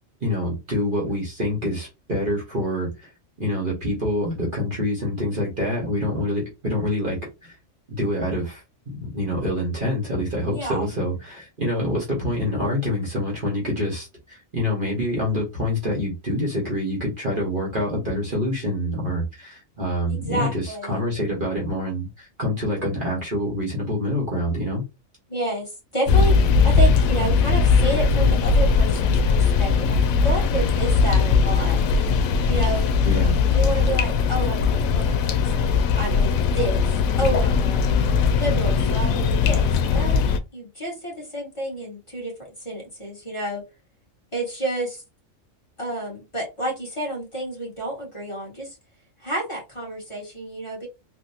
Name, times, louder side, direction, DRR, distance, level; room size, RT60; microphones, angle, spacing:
voice 1, 0.2-2.9 3.4-7.5 7.9-24.8 33.0-33.3, left 1 dB, 40° right, -2 dB, 1.2 m, -26 dB
voice 2, 10.5-10.9 20.2-21.0 25.3-26.4 26.6-31.8 32.5-32.8 33.5-36.8 37.2-37.8 38.4-40.2 40.5-42.3 42.6-43.6 44.3-45.0 45.8-48.8 49.2-50.9, right 1 dB, 20° left, -4 dB, 1.7 m, -30 dB
sound 1, 26.1-40.4, left 5 dB, 85° left, 1.0 m, -19 dB
3.5 x 2.5 x 2.7 m, 0.25 s
omnidirectional pair, 1.4 m